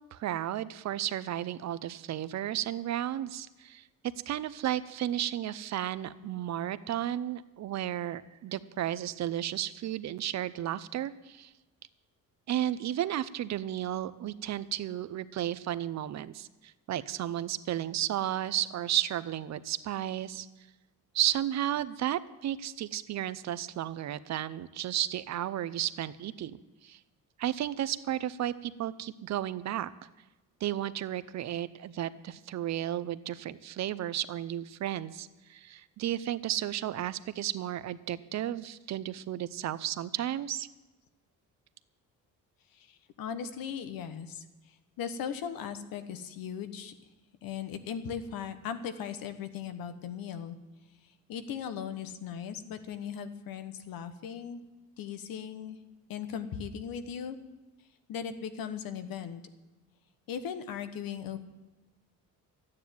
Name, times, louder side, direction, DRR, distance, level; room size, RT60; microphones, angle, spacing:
voice 1, 0.1-3.8 4.3-11.5 12.5-20.5 21.1-27.0 27.4-29.9 30.6-40.7, right 12 dB, 50° right, 15 dB, 0.6 m, -33 dB
voice 2, 42.7-46.9 47.4-50.6 51.0-54.6 55.0-55.8 56.1-57.4 58.1-59.4 60.3-61.4, left 8 dB, 85° left, 10 dB, 1.4 m, -38 dB
13.5 x 9.6 x 9.3 m, 1.1 s
cardioid pair, 165°, 34 cm